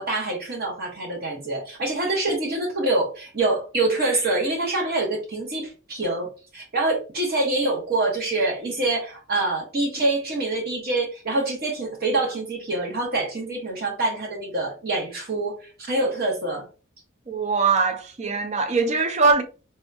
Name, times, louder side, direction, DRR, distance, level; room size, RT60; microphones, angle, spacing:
voice 1, 0.0-16.7, right 2 dB, 50° right, 1.1 m, -25 dB
voice 2, 17.3-19.4, right 4 dB, 35° right, 0.5 m, -21 dB
3.5 x 2.3 x 2.7 m
head